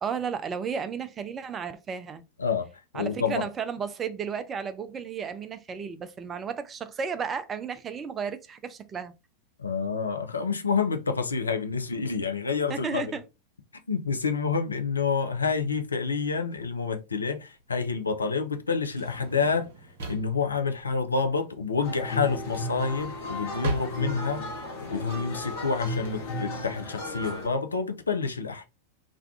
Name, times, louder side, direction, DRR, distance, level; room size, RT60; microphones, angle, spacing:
voice 1, 0.0-2.2 2.9-9.1 12.7-13.2, right 6 dB, 25° right, 0.3 m, -33 dB
voice 2, 2.9-3.5 9.6-13.0 13.9-19.7 20.1-28.7, left 5 dB, 75° left, 0.4 m, -28 dB
Drawer open or close, 16.5-26.1, right 3 dB, 55° right, 0.8 m, -40 dB
sound 1, 21.8-27.5, left 1 dB, 55° left, 0.9 m, -34 dB
2.5 x 2.2 x 3.4 m
figure-of-eight pair, 90°, 0 cm